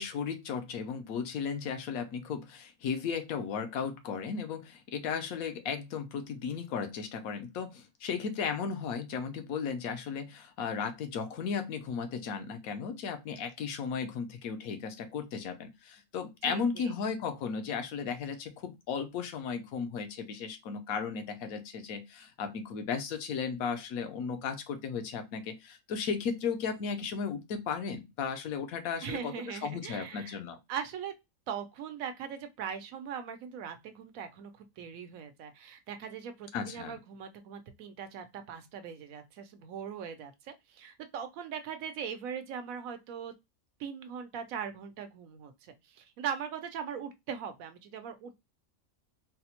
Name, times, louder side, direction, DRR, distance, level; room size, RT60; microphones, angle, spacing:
voice 1, 0.0-29.3 29.6-30.6 36.5-37.0, left 6 dB, 80° left, 1.1 m, -35 dB
voice 2, 16.4-17.0 29.0-30.4 30.7-31.1 31.5-43.3 43.8-48.3, right 7 dB, 75° right, 1.1 m, -40 dB
4.0 x 2.1 x 2.8 m
omnidirectional pair, 1.5 m